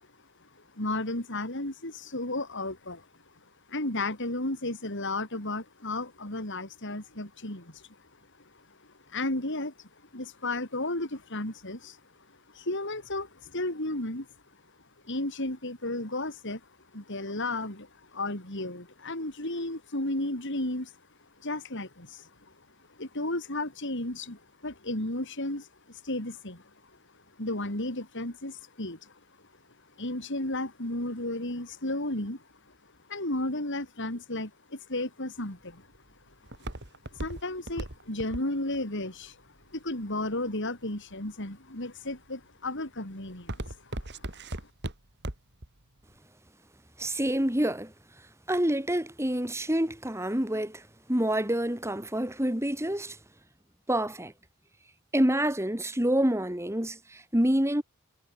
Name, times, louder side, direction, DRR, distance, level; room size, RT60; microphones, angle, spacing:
voice 1, 0.7-3.0 3.7-7.8 9.1-9.7 10.1-12.0 12.5-14.3 15.0-16.6 16.9-20.9 21.4-22.3 23.0-26.6 27.4-29.1 30.0-32.4 33.1-35.9 37.1-39.4 39.7-43.6, left 2 dB, 55° left, 5.2 m, -33 dB
Walk footsteps, 35.4-40.5 41.1-41.6 42.1-42.4 42.8-45.7 46.0-46.1, right 1 dB, 50° right, 3.3 m, -38 dB
voice 2, 47.0-47.9 48.5-53.2 53.9-54.3 55.1-57.8, right 1 dB, 10° right, 3.1 m, -27 dB
head